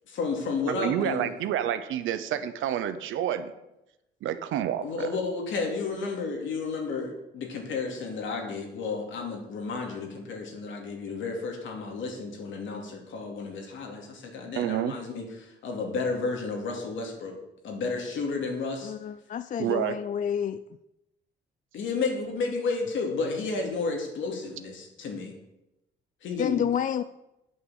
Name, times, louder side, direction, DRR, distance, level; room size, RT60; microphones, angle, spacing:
voice 1, 0.1-1.3 4.8-17.4 17.6-18.9 21.7-25.3 26.2-26.6, left 4 dB, 75° left, 2.6 m, -32 dB
voice 2, 0.7-3.5 4.2-5.1 14.5-14.9 19.6-19.9, right 10 dB, 85° right, 0.8 m, -29 dB
voice 3, 18.8-20.6 26.4-27.0, left 8 dB, 40° left, 0.4 m, -29 dB
8.6 x 7.0 x 7.1 m
cardioid pair, 90°, 20 cm